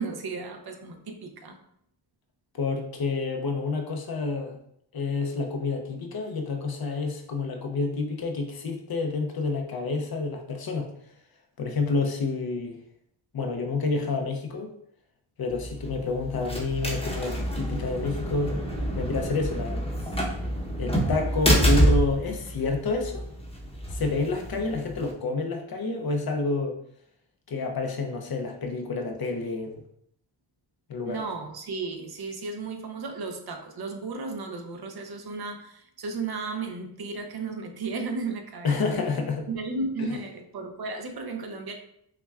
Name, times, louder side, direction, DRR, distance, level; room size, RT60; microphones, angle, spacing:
voice 1, 0.0-1.6 31.0-38.9 39.5-41.7, right 4 dB, 55° right, 5 dB, 0.7 m, -34 dB
voice 2, 2.5-4.6 4.9-10.9 11.6-12.8 13.3-14.7 15.4-18.7 18.9-19.8 20.8-23.2 23.9-26.8 27.5-29.8 30.9-31.2 38.6-39.5 40.0-40.1, left 3 dB, 55° left, 3 dB, 0.6 m, -29 dB
sound 1, 15.5-25.1, equal, 15° left, 0.8 m, -27 dB
5.6 x 2.2 x 2.4 m, 0.72 s
cardioid pair, 70°, 45 cm